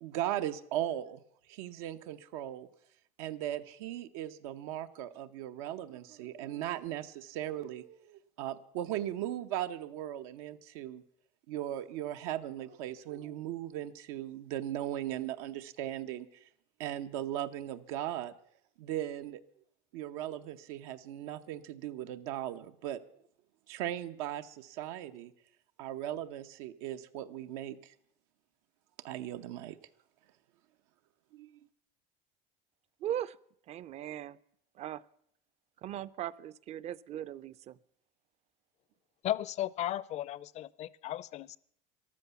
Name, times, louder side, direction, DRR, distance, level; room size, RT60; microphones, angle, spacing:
voice 1, 0.0-1.2 1.5-2.7 3.2-11.0 11.5-16.4 16.8-18.3 18.8-19.4 19.9-23.0 23.7-25.3 25.8-27.9 29.0-29.8 31.3-31.6, right 12 dB, 90° right, 8 dB, 0.9 m, -38 dB
voice 2, 33.0-33.4 33.7-34.4 34.8-35.0 35.8-37.8, right 11 dB, 40° right, 20 dB, 0.5 m, -38 dB
voice 3, 39.2-41.6, left 13 dB, 40° left, 21 dB, 0.5 m, -35 dB
14.0 x 12.0 x 6.9 m, 0.69 s
cardioid pair, 145°, 18 cm